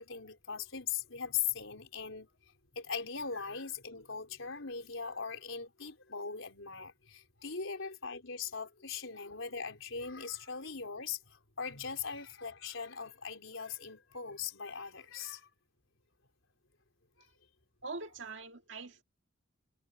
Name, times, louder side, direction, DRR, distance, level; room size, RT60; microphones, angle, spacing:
voice 1, 0.0-2.3 2.7-15.5 17.2-17.3, left 6 dB, 85° left, 3.9 m, -40 dB
voice 2, 17.8-19.0, right 3 dB, 65° right, 2.1 m, -43 dB
head